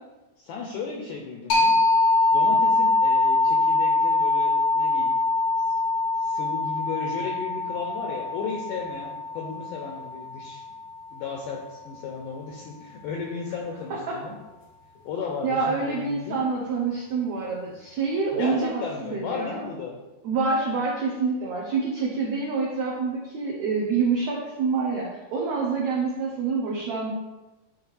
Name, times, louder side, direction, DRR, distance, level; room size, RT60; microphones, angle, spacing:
voice 1, 0.4-1.8 2.3-5.1 5.6-5.8 6.2-10.6 11.1-14.4 15.1-16.4 18.3-20.0, left 5 dB, 90° left, 0 dB, 1.8 m, -34 dB
sound 1, 1.5-10.9, left 2 dB, 75° left, 1.2 m, -23 dB
voice 2, 15.4-19.6 20.2-27.1, right 4 dB, 90° right, -3 dB, 1.5 m, -27 dB
10.0 x 3.6 x 3.2 m, 1.1 s
omnidirectional pair, 4.4 m